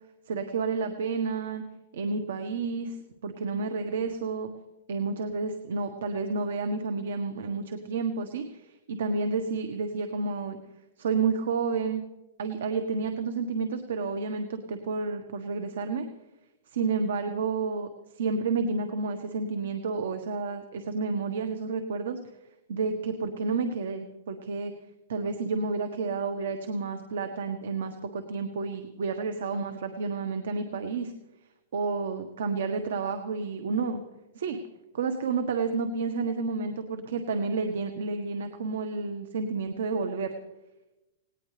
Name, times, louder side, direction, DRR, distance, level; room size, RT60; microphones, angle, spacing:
voice 1, 0.3-1.6 1.9-3.0 3.2-4.5 4.9-10.6 11.0-12.0 12.4-16.0 16.7-17.9 18.1-22.2 22.7-24.7 25.1-31.1 31.7-34.0 34.3-34.6 34.9-40.3, right 4 dB, 70° right, 7 dB, 1.4 m, -30 dB
19.0 x 18.5 x 3.4 m, 1.0 s
hypercardioid pair, 170°, 0 cm